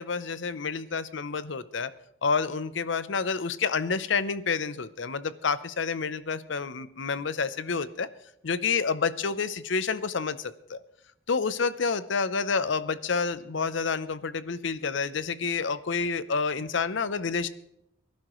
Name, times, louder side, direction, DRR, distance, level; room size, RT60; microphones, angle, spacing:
voice 1, 0.0-1.9 2.2-8.1 8.4-10.8 11.3-17.5, left 5 dB, 65° left, 15 dB, 0.7 m, -29 dB
23.0 x 11.5 x 3.1 m, 0.79 s
head